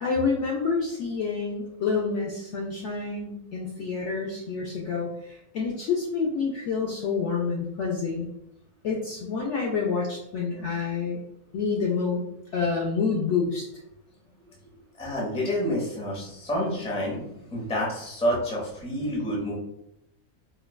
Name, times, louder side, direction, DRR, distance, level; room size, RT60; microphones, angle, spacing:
voice 1, 0.0-8.3 8.8-11.2 11.5-12.2 12.5-13.7, left 5 dB, 65° left, -2 dB, 0.7 m, -28 dB
voice 2, 15.0-19.6, equal, 5° left, -4 dB, 0.5 m, -28 dB
4.5 x 2.2 x 2.2 m, 0.81 s
omnidirectional pair, 1.6 m